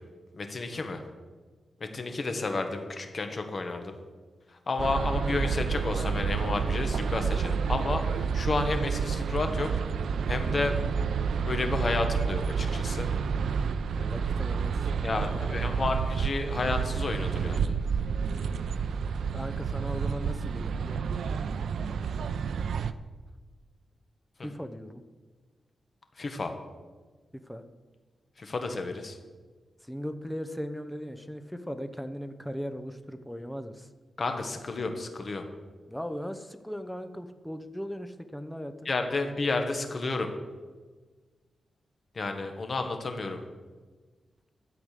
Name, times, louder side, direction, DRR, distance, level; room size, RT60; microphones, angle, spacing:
voice 1, 0.3-1.0 1.8-4.0 4.7-9.7 10.3-10.7 11.4-13.1 15.0-17.7 24.4-24.5 26.2-26.5 28.4-29.2 34.2-35.4 38.8-40.3 42.1-43.4, left 3 dB, 40° left, 6 dB, 1.5 m, -31 dB
sound 1, 4.8-22.9, right 6 dB, 85° right, 0.5 m, -29 dB
voice 2, 14.0-16.0 19.3-21.2 24.4-25.0 27.3-27.6 29.8-33.9 35.9-38.9, equal, 5° left, 8 dB, 0.7 m, -38 dB
12.0 x 8.0 x 6.6 m, 1.4 s
wide cardioid pair, 115°, 0 cm